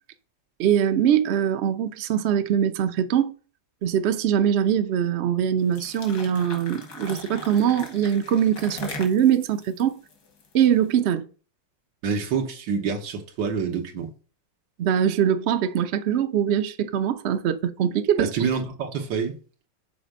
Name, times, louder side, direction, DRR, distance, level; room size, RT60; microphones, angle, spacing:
voice 1, 0.6-3.3 3.8-10.0 10.5-11.2 14.8-18.3, right 9 dB, 55° right, 0.7 m, -22 dB
sound 1, 5.6-10.9, left 3 dB, 75° left, 2.3 m, -40 dB
voice 2, 12.0-14.1 18.2-19.4, right 6 dB, 85° right, 1.9 m, -27 dB
6.8 x 4.4 x 5.1 m
omnidirectional pair, 2.0 m